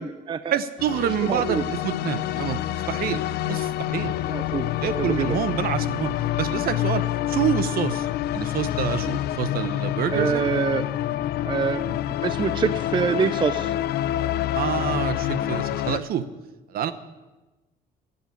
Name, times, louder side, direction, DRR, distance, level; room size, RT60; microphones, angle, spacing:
voice 1, 0.0-0.6 1.0-1.6 4.3-4.7 5.0-5.4 10.1-10.8 11.4-13.7, right 6 dB, 30° right, 13 dB, 0.4 m, -26 dB
voice 2, 0.5-4.2 4.8-6.1 6.4-10.5 14.5-16.3 16.7-16.9, right 9 dB, 60° right, 13 dB, 0.9 m, -27 dB
sound 1, 0.8-16.0, left 13 dB, 70° left, 0.5 m, -27 dB
11.5 x 6.8 x 9.6 m, 1.1 s
cardioid pair, 110°, 17 cm